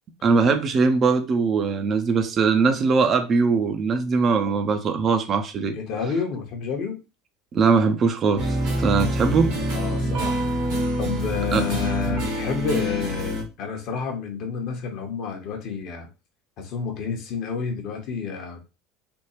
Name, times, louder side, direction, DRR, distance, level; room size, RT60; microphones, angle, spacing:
voice 1, 0.2-5.7 7.5-9.5 11.5-11.6, right 5 dB, 35° right, 0.5 m, -21 dB
voice 2, 5.7-7.0 9.1-9.2 9.7-10.4 11.0-16.1 16.6-18.6, left 5 dB, 50° left, 0.8 m, -29 dB
sound 1, 8.4-13.4, equal, 55° right, 1.1 m, -26 dB
3.5 x 2.3 x 3.0 m
figure-of-eight pair, 70°, 0 cm